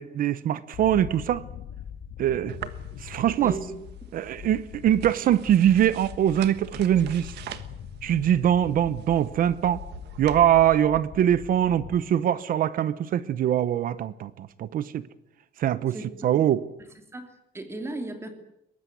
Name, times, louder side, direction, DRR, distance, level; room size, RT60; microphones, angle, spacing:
voice 1, 0.0-1.4 2.2-2.6 3.0-3.6 4.1-7.3 8.0-9.8 10.2-15.0 15.6-15.9 16.2-16.6, right 10 dB, 55° right, 16 dB, 0.9 m, -23 dB
sound 1, 0.7-12.0, left 9 dB, 85° left, 2.6 m, -42 dB
sound 2, 2.5-10.4, right 11 dB, 85° right, 1.5 m, -45 dB
voice 2, 3.4-3.7 15.9-16.3 17.1-18.3, right 2 dB, 15° right, 6 dB, 3.0 m, -36 dB
22.5 x 19.5 x 9.4 m, 0.84 s
cardioid pair, 170°, 17 cm